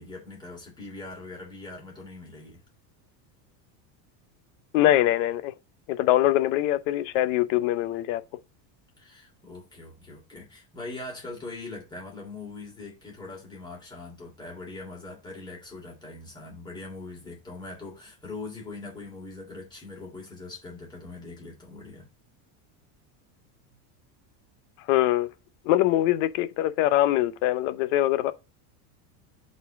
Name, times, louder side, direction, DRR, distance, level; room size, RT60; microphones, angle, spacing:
voice 1, 0.0-2.6 9.0-22.1 23.7-23.8, left 3 dB, 10° left, 3.2 m, -41 dB
voice 2, 4.7-5.5 5.9-8.2 24.9-25.3 25.7-28.3, left 14 dB, 50° left, 0.8 m, -23 dB
5.8 x 4.3 x 6.1 m
cardioid pair, 180°, 48 cm